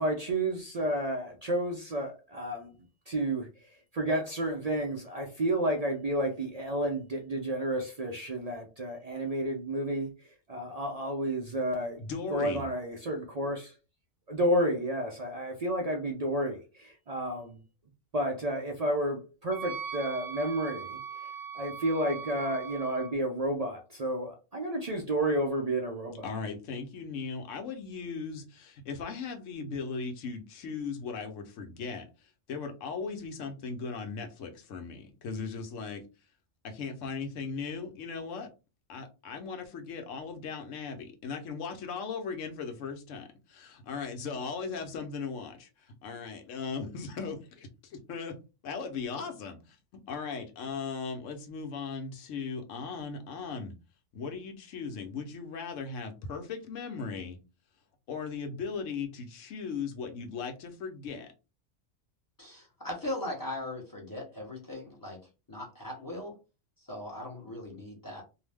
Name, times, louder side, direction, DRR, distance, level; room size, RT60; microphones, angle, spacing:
voice 1, 0.0-2.7 3.1-3.5 3.9-10.1 10.5-12.0 12.3-13.7 14.3-17.6 18.1-21.3 21.5-26.3, right 1 dB, 55° right, 0.4 m, -31 dB
voice 2, 12.0-12.6 26.2-32.1 32.5-36.0 36.6-38.5 38.9-48.4 48.6-49.8 50.1-53.7 54.1-57.4 58.1-61.3, left 5 dB, 85° left, 1.1 m, -38 dB
Wind instrument woodwind instrument, 19.5-23.1, right 7 dB, 85° right, 1.0 m, -40 dB
voice 3, 62.4-65.2 65.5-66.3 66.9-68.2, left 1 dB, 20° left, 0.8 m, -39 dB
2.7 x 2.0 x 3.3 m
omnidirectional pair, 1.3 m